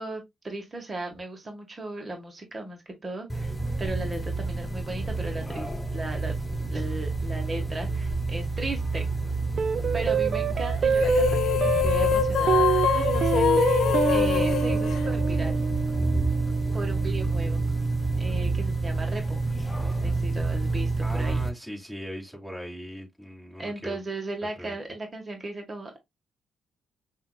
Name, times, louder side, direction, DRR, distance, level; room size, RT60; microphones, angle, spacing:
voice 1, 0.0-3.5 3.8-9.1 9.9-15.6 16.7-17.6 18.2-19.4 19.8-21.4 23.6-26.0, right 2 dB, 30° right, 1.4 m, -36 dB
sound 1, 3.3-21.5, right 3 dB, 15° left, 0.7 m, -28 dB
sound 2, 9.6-18.2, right 7 dB, 55° right, 0.6 m, -28 dB
voice 2, 9.8-10.3 21.0-24.0 24.6-24.8, equal, ahead, 2.7 m, -39 dB
sound 3, 10.9-15.6, left 11 dB, 75° left, 0.3 m, -25 dB
5.6 x 2.7 x 2.3 m
cardioid pair, 75°, 0 cm